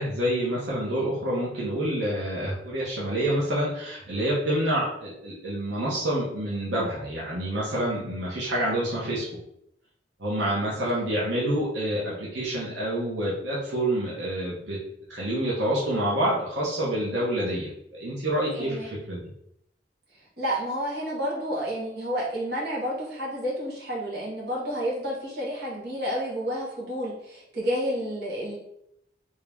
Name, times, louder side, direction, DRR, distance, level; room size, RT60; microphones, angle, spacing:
voice 1, 0.0-9.2 10.2-14.8 15.1-19.3, right 1 dB, 90° right, -6 dB, 1.1 m, -27 dB
voice 2, 18.6-18.9 20.4-28.6, equal, 65° right, -5 dB, 1.4 m, -30 dB
3.5 x 2.8 x 3.5 m, 0.76 s
head